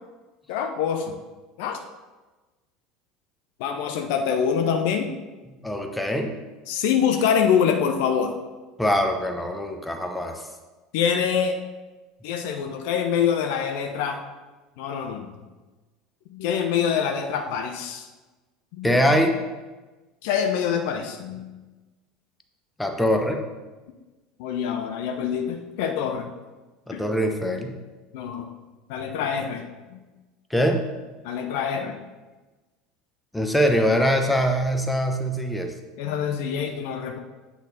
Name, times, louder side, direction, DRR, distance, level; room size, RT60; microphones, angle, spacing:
voice 1, 0.5-1.1 1.6-1.8 3.6-5.1 6.7-8.3 10.9-11.6 12.2-14.2 14.8-15.3 16.3-18.1 18.7-18.9 20.2-21.5 24.4-26.3 26.9-27.0 27.4-27.6 28.1-28.5 28.9-29.6 29.9-30.0 31.2-32.0 36.0-37.2, left 7 dB, 60° left, 5 dB, 0.5 m, -25 dB
voice 2, 5.6-6.3 8.8-10.4 18.8-19.4 22.8-23.4 26.9-27.7 30.5-30.9 33.3-35.7, equal, 5° left, 4 dB, 0.8 m, -23 dB
8.1 x 4.0 x 4.1 m, 1.2 s
figure-of-eight pair, 70°, 0 cm